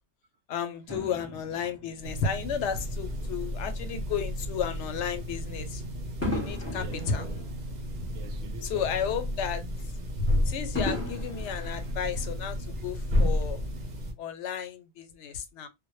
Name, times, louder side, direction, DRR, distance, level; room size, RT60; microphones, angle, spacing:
voice 1, 0.5-5.8 6.3-7.2 8.7-9.6 10.5-13.6 14.2-15.7, left 7 dB, 85° left, 0.9 m, -33 dB
Fireworks, 0.9-3.5 4.1-4.3 6.2-8.7 9.1-9.2 10.7-12.6 13.4-13.5, left 2 dB, 15° left, 0.6 m, -37 dB
sound 1, 2.0-14.1, left 1 dB, 45° right, 0.7 m, -32 dB
voice 2, 6.7-7.1 8.1-9.1, right 4 dB, 80° right, 0.9 m, -45 dB
2.1 x 2.0 x 2.9 m
omnidirectional pair, 1.1 m